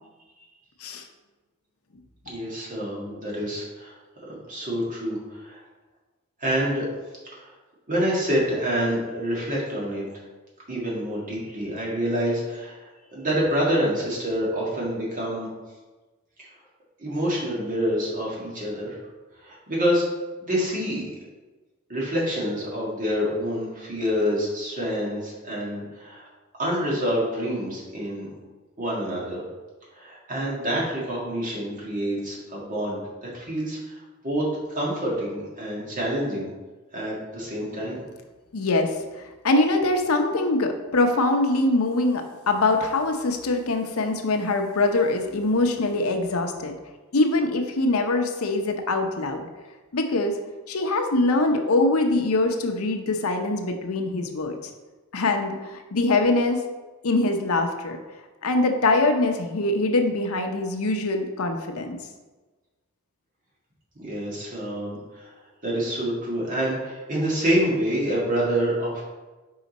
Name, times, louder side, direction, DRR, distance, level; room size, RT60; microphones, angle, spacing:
voice 1, 2.2-3.9 4.3-5.6 6.4-6.9 7.3-7.4 7.9-10.0 10.7-15.5 17.0-19.0 19.4-20.0 20.4-21.0 21.9-26.3 26.6-28.3 28.8-29.4 29.9-34.0 34.2-36.5 36.9-38.0 64.0-65.3 65.6-69.0, equal, 40° right, -4 dB, 1.8 m, -27 dB
voice 2, 38.5-38.9 39.4-46.7 47.1-49.5 49.9-50.3 50.7-54.6 55.1-56.6 57.0-58.0 58.4-62.0, left 2 dB, 90° left, 5 dB, 0.7 m, -23 dB
5.0 x 4.8 x 4.1 m, 1.2 s
head